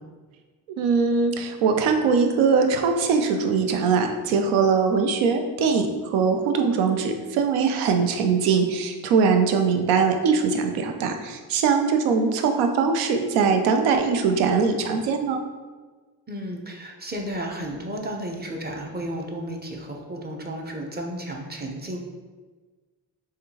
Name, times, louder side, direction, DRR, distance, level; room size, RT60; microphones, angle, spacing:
voice 1, 0.8-15.4, right 5 dB, 75° right, 5 dB, 0.5 m, -21 dB
voice 2, 16.3-22.0, right 1 dB, 20° right, 1 dB, 0.6 m, -33 dB
3.5 x 2.3 x 2.8 m, 1.4 s
hypercardioid pair, 45°, 49 cm